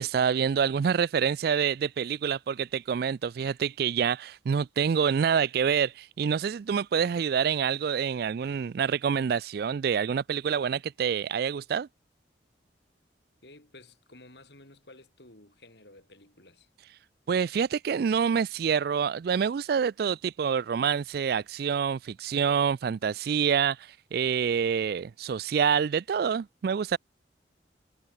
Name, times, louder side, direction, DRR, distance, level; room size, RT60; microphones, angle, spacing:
voice 1, 0.0-11.9 17.3-27.0, right 7 dB, 55° right, 0.3 m, -27 dB
voice 2, 13.4-16.7, left 2 dB, 65° left, 7.7 m, -53 dB
head